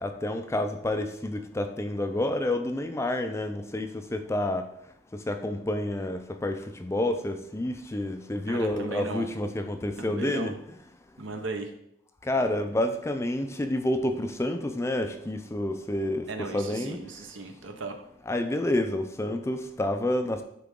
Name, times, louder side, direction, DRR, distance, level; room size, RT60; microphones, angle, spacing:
voice 1, 0.0-4.6 5.3-10.5 12.3-17.0 18.3-20.4, left 1 dB, 15° left, 7 dB, 0.4 m, -29 dB
voice 2, 8.5-9.3 10.0-10.5 11.2-11.7 16.3-18.0, right 3 dB, 70° right, 5 dB, 0.9 m, -36 dB
9.6 x 3.8 x 3.7 m, 0.75 s
head